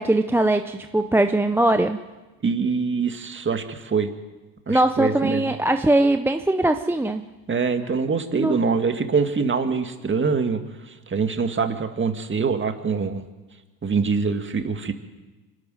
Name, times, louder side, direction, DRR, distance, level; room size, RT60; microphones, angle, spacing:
voice 1, 0.0-2.0 4.7-7.2 8.3-8.6, right 1 dB, 5° right, 7 dB, 0.6 m, -21 dB
voice 2, 2.4-4.1 4.7-5.5 7.5-10.6 10.9-13.2 13.8-14.9, right 5 dB, 25° right, 7 dB, 2.1 m, -24 dB
24.5 x 12.5 x 9.4 m, 1.2 s
supercardioid pair, 105°, 49 cm